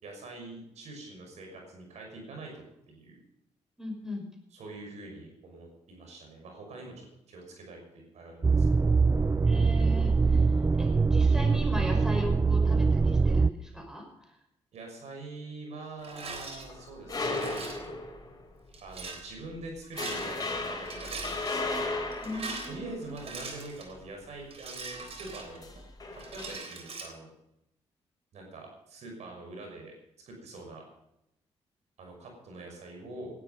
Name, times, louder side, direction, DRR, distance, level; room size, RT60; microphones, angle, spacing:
voice 1, 0.0-3.2 4.5-7.8 8.1-8.9 14.7-18.0 18.8-22.1 22.6-25.7 26.1-27.3 28.3-29.9 30.3-30.8 32.0-33.3, right 2 dB, 75° right, 1 dB, 6.0 m, -44 dB
voice 2, 3.8-4.3 9.4-10.5 10.8-14.3 22.2-23.1, left 1 dB, 5° right, 2 dB, 5.5 m, -38 dB
sound 1, 8.4-13.5, right 4 dB, 25° right, 0.5 m, -23 dB
Rattle, 16.0-16.6 17.2-17.9 18.7-19.2 19.8-20.5 20.8-21.6 22.1-23.9 24.5-25.8 26.2-27.1, right 4 dB, 60° right, 3.8 m, -41 dB
sound 2, 16.2-18.5 18.9-19.1 19.5-19.6 20.0-23.5 25.5-26.5, left 2 dB, 35° left, 3.8 m, -35 dB
17.0 x 12.0 x 5.4 m, 0.84 s
cardioid pair, 65°, 12 cm